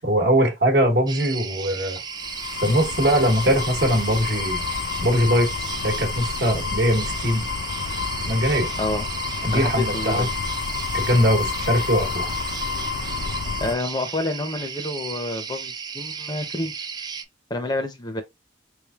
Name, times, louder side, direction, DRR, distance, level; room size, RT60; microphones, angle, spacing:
voice 1, 0.0-2.0 2.6-4.6 5.0-7.5 8.3-8.7 9.4-10.3 10.9-12.3, equal, 65° right, 1.0 m, -21 dB
sound 1, 1.1-17.3, right 6 dB, 25° right, 0.3 m, -35 dB
sound 2, 2.0-13.7, left 5 dB, 75° left, 0.5 m, -29 dB
voice 2, 9.5-10.3 13.3-16.7 17.5-18.2, left 2 dB, 25° left, 0.6 m, -28 dB
3.5 x 3.2 x 2.3 m
head